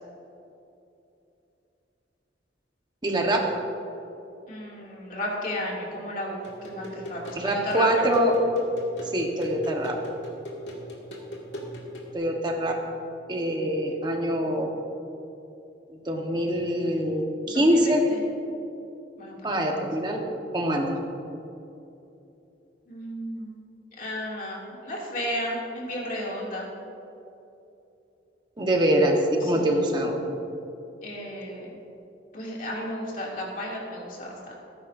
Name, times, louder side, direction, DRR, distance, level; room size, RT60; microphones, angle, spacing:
voice 1, 3.0-3.4 7.4-8.3 9.0-9.9 12.1-12.7 13.3-14.7 15.9-18.0 19.4-20.2 20.5-20.9 28.6-30.2, right 1 dB, 25° right, 1 dB, 1.2 m, -24 dB
voice 2, 4.5-7.9 17.4-18.2 19.2-19.9 22.9-23.6 24.0-26.7 29.4-29.8 31.0-31.7 32.3-34.6, left 1 dB, 50° left, -4 dB, 2.5 m, -34 dB
sound 1, 6.4-12.2, equal, 75° left, 2.1 m, -40 dB
17.5 x 9.9 x 2.6 m, 2.9 s
head